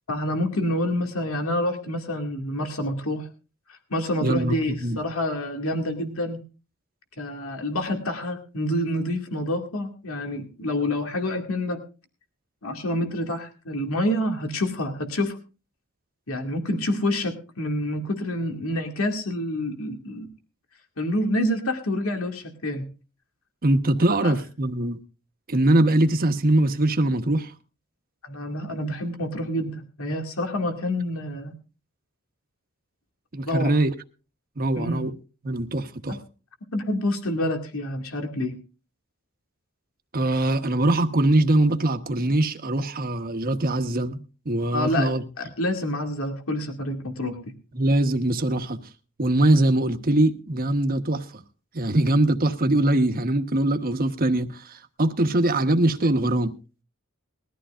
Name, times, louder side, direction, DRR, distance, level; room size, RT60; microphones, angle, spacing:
voice 1, 0.1-3.3 3.7-6.4 7.2-11.8 12.6-15.4 16.3-20.3 21.0-22.9 24.2-24.3 28.2-31.5 33.5-33.7 34.7-35.0 36.7-38.6 44.7-45.1 45.4-47.4, left 1 dB, 75° left, 2.3 m, -27 dB
voice 2, 4.2-5.0 23.6-25.0 25.5-27.5 33.3-33.9 34.6-35.1 35.4-36.2 40.1-44.2 44.4-45.2 47.7-48.8 49.2-51.3 51.7-56.5, right 1 dB, 45° right, 1.2 m, -22 dB
21.0 x 14.0 x 2.5 m
head